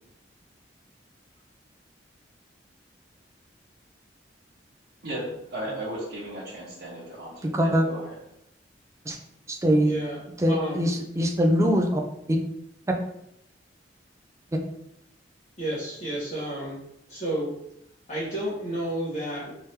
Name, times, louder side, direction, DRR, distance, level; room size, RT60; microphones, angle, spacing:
voice 1, 5.0-8.1, right 1 dB, 65° right, -9 dB, 1.0 m, -35 dB
voice 2, 7.4-7.8 9.1-9.2 9.5-9.9 10.4-12.0 12.3-12.4, equal, 15° right, 3 dB, 0.4 m, -22 dB
voice 3, 9.8-10.2 10.5-10.9 15.6-16.8 17.1-17.5 18.1-19.5, right 1 dB, 40° left, -9 dB, 1.2 m, -31 dB
3.5 x 3.4 x 2.8 m, 0.77 s
head